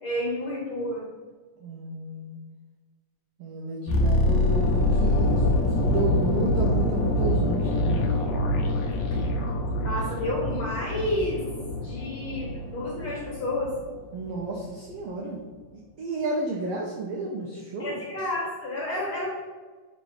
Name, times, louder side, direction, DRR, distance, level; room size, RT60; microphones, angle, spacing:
voice 1, 0.0-1.0 9.8-11.4 11.8-13.7 17.8-19.3, left 1 dB, 55° left, -4 dB, 1.8 m, -30 dB
voice 2, 1.6-2.4 3.4-8.0 14.1-15.4 16.0-18.0, right 3 dB, 85° right, -1 dB, 1.3 m, -32 dB
sound 1, 3.9-13.9 14.1-14.4, left 1 dB, 75° left, 2.1 m, -25 dB
7.9 x 3.1 x 4.8 m, 1.4 s
omnidirectional pair, 3.8 m